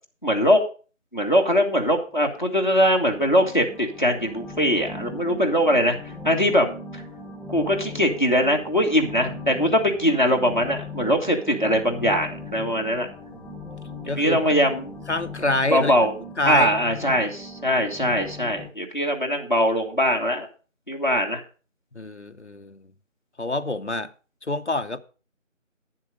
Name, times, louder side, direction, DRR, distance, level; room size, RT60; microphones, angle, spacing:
voice 1, 0.2-0.6 1.1-5.9 6.2-7.0 7.5-13.1 14.2-15.0 15.7-16.1 16.4-20.5 20.9-21.4, equal, 35° left, 1.4 m, -21 dB
sound 1, 2.3-18.7, left 2 dB, ahead, 0.6 m, -39 dB
voice 2, 14.1-14.5 15.1-16.0 16.4-16.7 21.9-22.9 23.4-24.1 24.5-25.0, left 2 dB, 60° left, 0.8 m, -26 dB
10.5 x 7.5 x 5.0 m
figure-of-eight pair, 180°, 40 cm